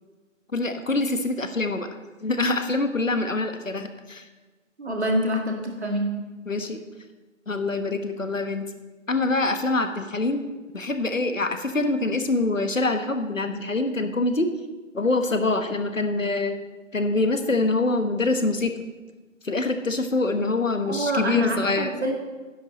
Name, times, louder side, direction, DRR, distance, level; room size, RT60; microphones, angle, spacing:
voice 1, 0.5-1.9 2.2-4.2 6.5-6.8 7.5-8.7 9.1-10.5 10.7-14.5 14.9-16.5 16.9-18.7 19.4-21.9, left 2 dB, 75° left, 8 dB, 1.3 m, -25 dB
voice 2, 4.8-6.1 20.9-22.1, equal, 55° right, 2 dB, 2.1 m, -26 dB
11.5 x 10.5 x 4.2 m, 1.2 s
figure-of-eight pair, 160°, 40 cm